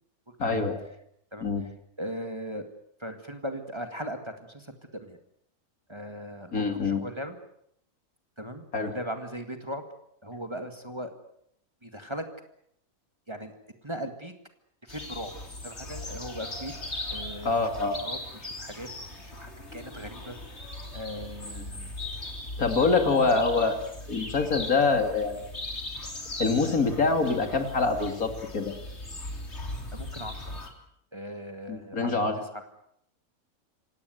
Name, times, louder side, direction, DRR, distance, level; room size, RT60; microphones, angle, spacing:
voice 1, 0.4-0.8 1.4-1.6 6.5-7.0 8.7-8.9 17.4-18.0 22.6-23.8 24.1-25.4 26.4-28.7 31.7-32.3, left 4 dB, 70° left, 6 dB, 3.0 m, -25 dB
voice 2, 1.3-1.7 2.0-2.6 3.0-5.2 5.9-7.4 8.4-9.9 10.2-11.1 11.8-12.2 13.3-13.5 13.8-14.3 14.8-15.3 15.6-16.7 17.1-18.9 19.2-21.9 22.8-23.3 29.9-30.7 31.1-32.6, equal, 20° right, 6 dB, 2.0 m, -39 dB
sound 1, 14.9-30.7, left 2 dB, 45° left, 3.7 m, -39 dB
27.5 x 17.5 x 8.0 m, 0.72 s
omnidirectional pair, 1.5 m